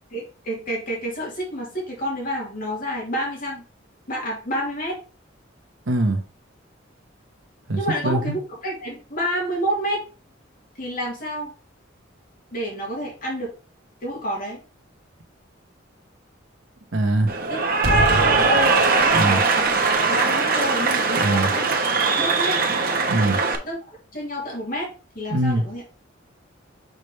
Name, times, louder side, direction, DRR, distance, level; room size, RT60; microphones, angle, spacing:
voice 1, 0.1-3.6 4.1-5.0 7.8-10.0 10.8-11.5 12.5-13.5 14.0-14.6 17.5-17.8 18.1-19.7 20.1-21.7 22.2-22.6 23.6-24.9 25.1-25.8, equal, 45° left, -3 dB, 2.8 m, -29 dB
voice 2, 5.9-6.2 7.7-8.4 16.9-17.3 19.1-19.4 21.2-21.5 23.1-23.4 25.3-25.6, right 1 dB, 85° right, 6 dB, 1.2 m, -22 dB
Cheering / Applause, 17.3-23.6, right 3 dB, 50° right, 1.2 m, -20 dB
6.7 x 5.2 x 3.2 m, 0.34 s
head